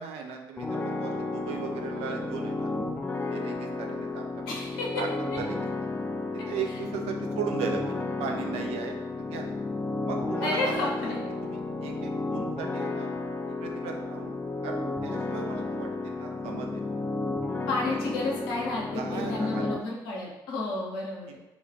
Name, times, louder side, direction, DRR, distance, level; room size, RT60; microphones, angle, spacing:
voice 1, 0.0-2.7 3.2-4.4 5.0-5.1 5.4-5.7 6.3-9.5 10.0-11.1 11.4-16.9 17.8-18.0 18.9-19.6, right 6 dB, 55° right, 3 dB, 0.5 m, -37 dB
sound 1, 0.6-19.8, left 3 dB, 15° left, 0.4 m, -32 dB
voice 2, 4.5-4.9 10.4-11.1 17.7-21.4, left 2 dB, 70° left, -3 dB, 0.8 m, -31 dB
2.8 x 2.3 x 4.1 m, 0.97 s
figure-of-eight pair, 45°, 12 cm